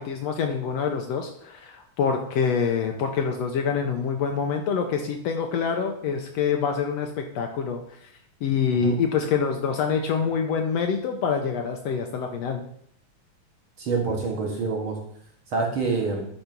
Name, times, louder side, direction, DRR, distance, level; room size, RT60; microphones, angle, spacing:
voice 1, 0.0-7.8 8.4-12.6, left 6 dB, 75° left, 4 dB, 1.6 m, -26 dB
voice 2, 13.8-15.0 15.5-16.3, right 4 dB, 50° right, 0 dB, 1.9 m, -26 dB
10.5 x 4.1 x 5.9 m, 0.67 s
omnidirectional pair, 3.4 m